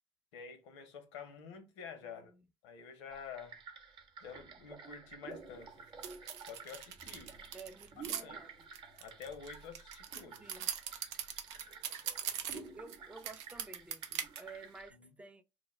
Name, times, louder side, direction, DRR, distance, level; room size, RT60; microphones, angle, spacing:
voice 1, 0.3-2.3 2.6-3.6 3.9-5.9 6.4-7.3 8.2-8.4 9.0-10.6 14.9-15.2, left 6 dB, 75° left, 0.8 m, -49 dB
voice 2, 2.0-2.4 7.5-8.5 10.4-10.7 12.5-15.4, right 3 dB, 10° right, 0.4 m, -52 dB
sound 1, 3.1-14.9, right 4 dB, 35° right, 0.8 m, -52 dB
sound 2, 6.0-8.2 8.7-13.0 13.2-14.4, right 9 dB, 75° right, 0.4 m, -41 dB
2.2 x 2.1 x 3.1 m
hypercardioid pair, 65°, 15 cm